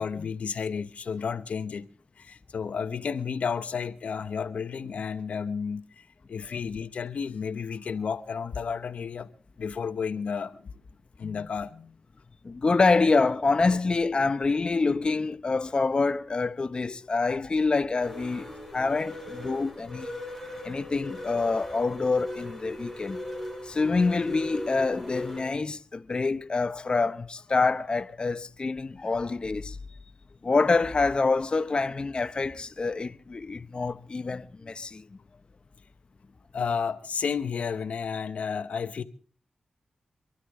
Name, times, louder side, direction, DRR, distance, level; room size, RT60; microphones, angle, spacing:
voice 1, 0.0-1.9 2.2-9.3 9.6-10.7 11.2-12.0 36.5-39.0, left 6 dB, 75° left, 0.9 m, -32 dB
voice 2, 12.4-20.1 20.6-23.2 23.6-29.8 30.4-35.0, left 3 dB, 45° left, 0.7 m, -26 dB
sound 1, 18.0-25.4, left 1 dB, 5° right, 4.3 m, -39 dB
25.0 x 13.0 x 3.6 m
cardioid pair, 60°, 2 cm